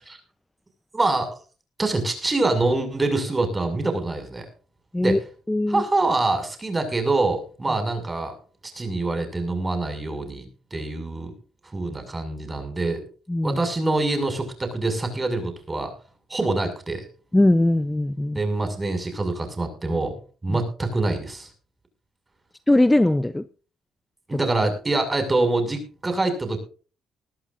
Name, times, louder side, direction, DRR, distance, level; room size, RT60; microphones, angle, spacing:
voice 1, 0.9-1.3 1.8-4.4 5.0-5.2 5.7-8.3 8.7-10.5 10.7-11.3 11.7-13.0 13.4-15.9 16.3-17.1 18.3-20.2 20.4-21.5 24.3-26.6, right 2 dB, 20° right, 6.5 m, -25 dB
voice 2, 5.5-5.8 13.3-13.6 17.3-18.4 20.5-20.6 22.7-23.4, left 1 dB, 10° left, 0.8 m, -20 dB
21.5 x 13.0 x 2.6 m
cardioid pair, 90°, 0 cm